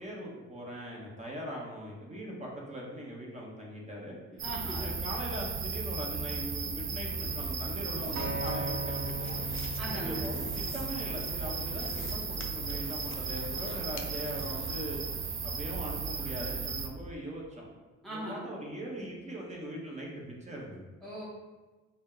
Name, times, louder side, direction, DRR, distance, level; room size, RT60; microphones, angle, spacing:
voice 1, 0.0-4.2 4.8-9.4 9.9-15.0 15.4-17.7 18.1-20.9, right 1 dB, 25° right, -2 dB, 1.0 m, -41 dB
voice 2, 4.4-4.9 9.8-10.3 18.0-18.5 21.0-21.2, right 1 dB, ahead, -6 dB, 0.6 m, -39 dB
sound 1, 4.4-16.9, right 5 dB, 40° right, 0.5 m, -35 dB
sound 2, 7.0-14.8, left 6 dB, 45° left, 0.4 m, -48 dB
Acoustic guitar, 8.2-12.4 13.2-13.4, right 1 dB, 60° right, 0.9 m, -40 dB
4.1 x 2.2 x 3.7 m, 1.3 s
cardioid pair, 90°, 30 cm